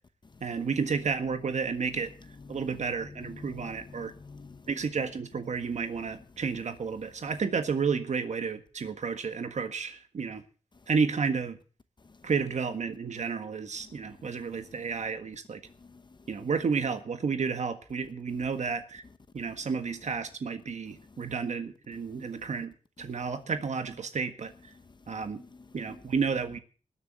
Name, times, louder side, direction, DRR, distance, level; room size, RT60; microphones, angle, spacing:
voice 1, 0.4-2.1 2.5-4.1 4.7-10.4 10.9-11.6 12.2-15.6 16.3-19.0 19.3-24.5 25.1-25.4 25.7-26.6, right 5 dB, 65° right, 1.6 m, -31 dB
voice 2, 2.2-4.6 15.9-16.0 19.4-19.5 23.0-23.2 25.1-26.2, left 4 dB, 35° left, 0.9 m, -49 dB
20.0 x 7.1 x 7.5 m
wide cardioid pair, 105°, 13 cm